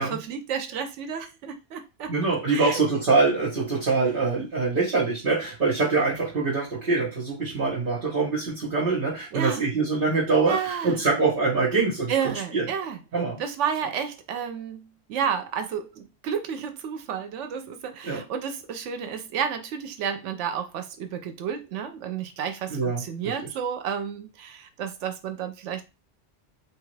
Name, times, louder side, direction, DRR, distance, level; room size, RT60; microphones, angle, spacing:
voice 1, 0.0-2.1 2.5-2.8 9.3-9.6 10.5-11.0 12.1-13.0 13.4-25.8, right 7 dB, 90° right, 0.9 m, -31 dB
voice 2, 2.1-12.7 13.1-13.4 18.0-18.2 22.7-23.3, right 4 dB, 50° right, 1.2 m, -24 dB
3.2 x 2.4 x 3.1 m
omnidirectional pair, 1.2 m